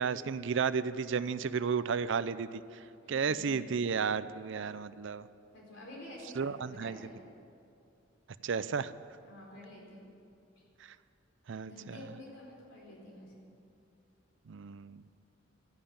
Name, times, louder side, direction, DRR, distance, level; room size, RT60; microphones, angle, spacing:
voice 1, 0.0-5.3 6.4-7.0 8.4-8.9 10.8-11.0 11.5-12.0 14.5-15.0, right 6 dB, 65° right, 15 dB, 0.5 m, -33 dB
voice 2, 3.0-3.5 5.5-7.2 9.2-10.1 10.5-10.6 11.6-13.4, left 1 dB, 60° left, -2 dB, 4.5 m, -49 dB
13.5 x 11.0 x 8.7 m, 2.5 s
head